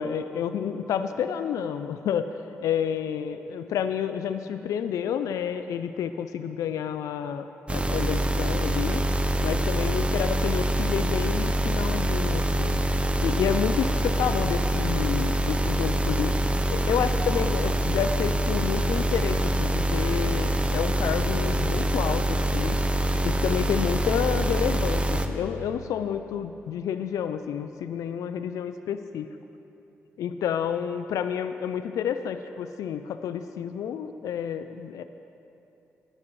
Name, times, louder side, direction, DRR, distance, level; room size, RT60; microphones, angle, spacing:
voice 1, 0.0-2.3 2.6-9.1 9.4-12.8 13.2-16.4 16.7-22.8 23.2-29.3 30.2-35.0, left 8 dB, 80° left, 10 dB, 0.4 m, -29 dB
sound 1, 7.7-25.3, right 1 dB, 20° right, 1.0 m, -25 dB
18.5 x 11.0 x 3.2 m, 3.0 s
supercardioid pair, 45°, 6 cm